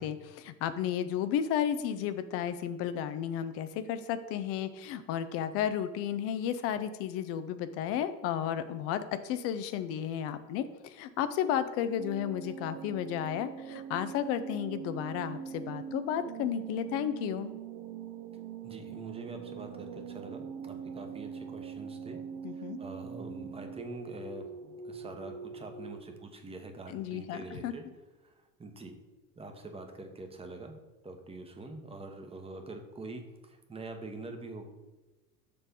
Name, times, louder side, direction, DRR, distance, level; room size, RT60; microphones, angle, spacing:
voice 1, 0.0-17.5 22.4-22.8 26.9-27.7, left 9 dB, 30° left, 11 dB, 0.4 m, -33 dB
sound 1, 12.0-26.0, right 7 dB, 50° right, 0.7 m, -43 dB
voice 2, 18.6-22.2 22.5-24.5 24.8-27.9 28.2-28.9 29.4-30.8 31.0-34.7, right 2 dB, 10° right, 5 dB, 0.9 m, -45 dB
6.7 x 3.3 x 5.4 m, 1.1 s
hypercardioid pair, 80°, 49 cm